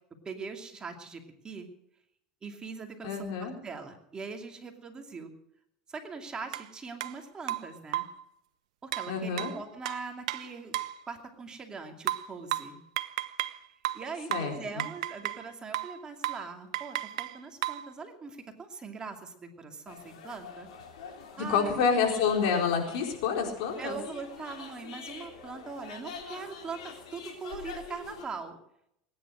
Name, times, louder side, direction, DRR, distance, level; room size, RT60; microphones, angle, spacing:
voice 1, 0.2-1.7 2.4-5.3 5.9-8.1 8.8-10.8 11.1-12.8 13.9-20.7 21.4-21.9 23.8-28.6, right 4 dB, 25° right, 4 dB, 2.6 m, -41 dB
voice 2, 3.0-3.5 9.1-9.5 14.3-14.5 21.4-24.0, left 6 dB, 70° left, 2 dB, 4.4 m, -28 dB
sound 1, 6.5-6.7 7.0-7.1 7.5-8.2 8.9-11.0 12.1-13.6 13.8-15.5 15.7-16.0 16.2-16.5 16.7-17.9, right 15 dB, 80° right, 0.7 m, -34 dB
sound 2, 19.9-28.2, left 6 dB, 90° left, 3.7 m, -46 dB
20.0 x 10.5 x 6.4 m, 0.76 s
supercardioid pair, 115°, 3 cm